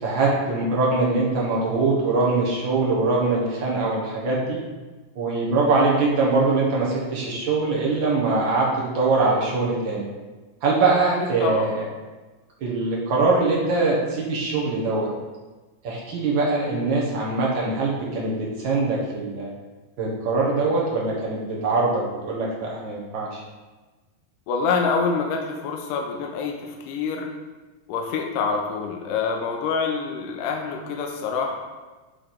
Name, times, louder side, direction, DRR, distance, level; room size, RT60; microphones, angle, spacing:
voice 1, 0.0-4.6 5.1-10.0 10.6-11.9 12.6-15.1 15.8-19.5 20.0-23.4, right 3 dB, 65° right, -4 dB, 1.2 m, -22 dB
voice 2, 24.5-27.3 27.9-31.6, left 5 dB, 80° left, 1 dB, 2.2 m, -26 dB
8.4 x 3.3 x 4.3 m, 1.2 s
omnidirectional pair, 4.0 m